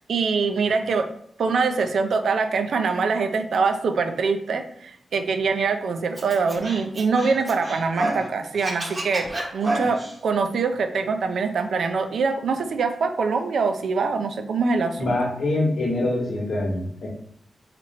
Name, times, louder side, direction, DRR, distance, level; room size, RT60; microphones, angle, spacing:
voice 1, 0.1-1.1 1.4-9.2 9.5-15.0, right 4 dB, 80° right, 6 dB, 0.4 m, -24 dB
Scratching (performance technique), 6.2-8.3 8.5-10.1, right 1 dB, 30° right, 0.9 m, -29 dB
voice 2, 15.0-17.1, left 2 dB, 80° left, -2 dB, 1.1 m, -24 dB
3.0 x 2.5 x 4.1 m, 0.65 s
wide cardioid pair, 105°, 0 cm